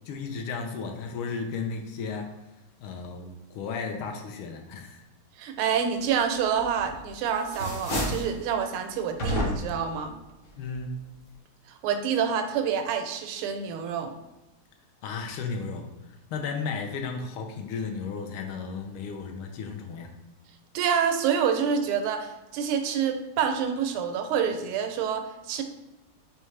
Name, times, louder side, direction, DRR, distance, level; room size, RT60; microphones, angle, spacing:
voice 1, 0.1-2.3 2.8-5.0 10.6-11.0 15.0-15.9 16.3-20.1, left 5 dB, 80° left, 4 dB, 1.5 m, -34 dB
voice 2, 5.4-10.2 11.8-14.1 20.7-25.6, right 7 dB, 90° right, 7 dB, 1.5 m, -27 dB
sound 1, 6.6-7.1 7.4-8.3 9.2-9.9, equal, 50° left, 0.7 m, -29 dB
4.3 x 3.4 x 3.2 m, 1.0 s
omnidirectional pair, 2.3 m